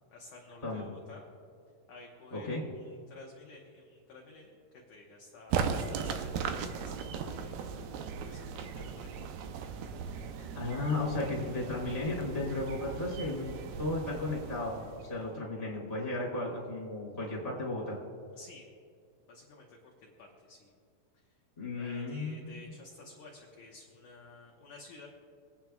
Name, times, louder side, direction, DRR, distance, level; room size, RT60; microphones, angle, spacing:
voice 1, 0.1-1.3 1.9-4.6 4.9-7.7 8.2-9.2 18.4-18.7 19.3-20.7 21.8-25.1, left 3 dB, 70° left, -2 dB, 2.0 m, -53 dB
voice 2, 2.3-2.6 10.5-18.0 21.6-22.6, left 2 dB, 10° left, -6 dB, 2.8 m, -35 dB
sound 1, 5.5-15.3, right 6 dB, 80° right, 2.3 m, -38 dB
25.0 x 9.0 x 2.3 m, 2.3 s
omnidirectional pair, 5.0 m